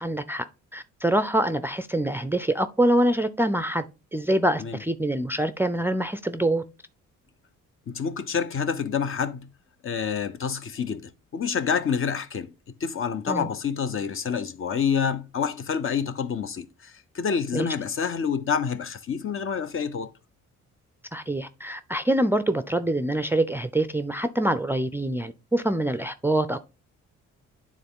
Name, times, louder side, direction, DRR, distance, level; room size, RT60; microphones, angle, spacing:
voice 1, 0.0-0.4 0.7-3.8 4.1-6.6 13.3-13.5 17.5-17.7 21.1-26.6, right 1 dB, 5° right, 0.4 m, -25 dB
voice 2, 7.9-9.5 9.8-11.0 11.3-12.5 12.8-20.1, left 6 dB, 45° left, 0.7 m, -28 dB
9.2 x 3.6 x 3.6 m
cardioid pair, 90°, 30 cm